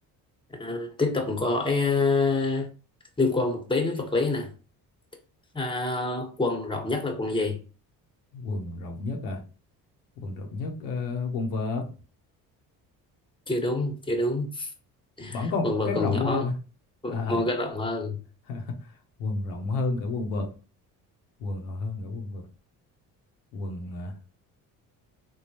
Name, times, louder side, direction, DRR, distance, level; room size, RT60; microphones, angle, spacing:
voice 1, 0.6-2.7 3.2-4.5 5.5-7.6 13.5-14.7 15.2-16.5 17.0-18.2, left 3 dB, 10° left, 1.1 m, -27 dB
voice 2, 8.3-9.4 10.2-11.8 15.3-16.5 17.0-17.5 18.5-18.6 19.2-20.5 21.4-22.4 23.5-24.1, left 3 dB, 90° left, 0.8 m, -31 dB
3.5 x 2.3 x 2.7 m
hypercardioid pair, 60°, 43 cm